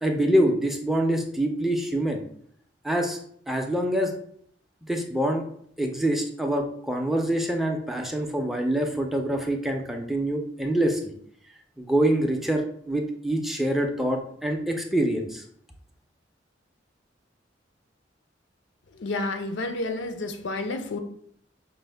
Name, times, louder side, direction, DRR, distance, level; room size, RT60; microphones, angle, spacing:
voice 1, 0.0-2.2 2.8-3.2 3.5-4.1 4.9-5.4 5.8-11.0 11.8-15.4, right 1 dB, ahead, 2 dB, 0.4 m, -25 dB
voice 2, 19.0-21.0, left 2 dB, 80° left, 7 dB, 0.5 m, -30 dB
5.1 x 2.0 x 3.3 m, 0.64 s
head